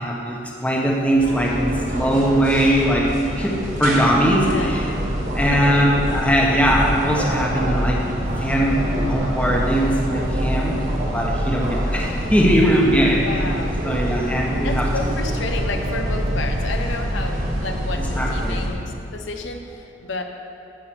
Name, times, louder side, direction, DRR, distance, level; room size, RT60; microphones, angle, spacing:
voice 1, 0.0-4.8 5.3-8.0 8.4-8.8 9.1-10.8 11.1-13.2 13.8-14.9 18.1-18.6, equal, 5° left, -2 dB, 1.2 m, -20 dB
sound 1, 1.2-18.7, equal, 45° right, 1.8 m, -25 dB
voice 2, 4.4-4.7 5.5-5.8 13.2-13.8 14.6-20.2, left 3 dB, 75° left, 4 dB, 0.9 m, -31 dB
14.0 x 5.9 x 6.0 m, 2.8 s
head